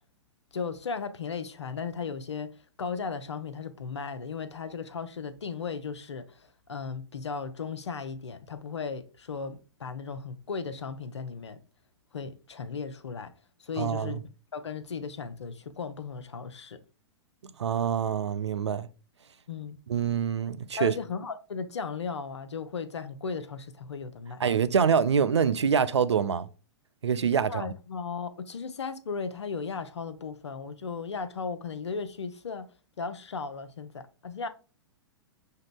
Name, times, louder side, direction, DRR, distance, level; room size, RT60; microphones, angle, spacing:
voice 1, 0.5-2.5 2.8-11.6 12.1-13.3 13.6-14.2 14.5-16.8 19.5-19.8 20.8-24.4 27.4-32.7 33.0-34.5, left 5 dB, 80° left, 0.6 m, -36 dB
voice 2, 13.8-14.2 17.4-18.9 19.9-20.9 24.4-26.5 27.0-27.7, right 7 dB, 85° right, 0.4 m, -25 dB
5.9 x 2.8 x 2.2 m
figure-of-eight pair, 110°, 14 cm